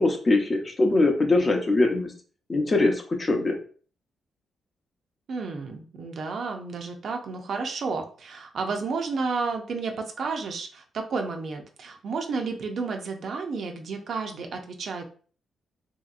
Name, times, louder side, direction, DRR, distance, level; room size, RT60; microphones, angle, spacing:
voice 1, 0.0-2.1 2.5-3.6, left 2 dB, 35° left, 3 dB, 0.6 m, -22 dB
voice 2, 5.3-15.0, right 4 dB, 65° right, 4 dB, 0.5 m, -31 dB
2.8 x 2.7 x 2.4 m, 0.42 s
cardioid pair, 95°, 0 cm